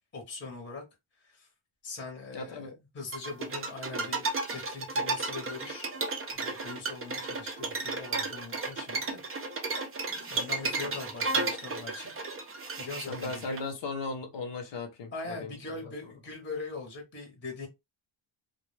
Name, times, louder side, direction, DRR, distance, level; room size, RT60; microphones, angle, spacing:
voice 1, 0.1-0.8 1.2-1.5 1.8-5.9 6.3-9.2 10.3-13.6 15.1-17.7, left 3 dB, 25° left, 0.7 m, -42 dB
voice 2, 2.3-2.8 10.2-10.3 13.1-15.5, left 3 dB, 65° left, 0.7 m, -37 dB
sound 1, 3.1-13.6, right 3 dB, 30° right, 0.4 m, -33 dB
2.1 x 2.1 x 3.0 m
wide cardioid pair, 150°, 47 cm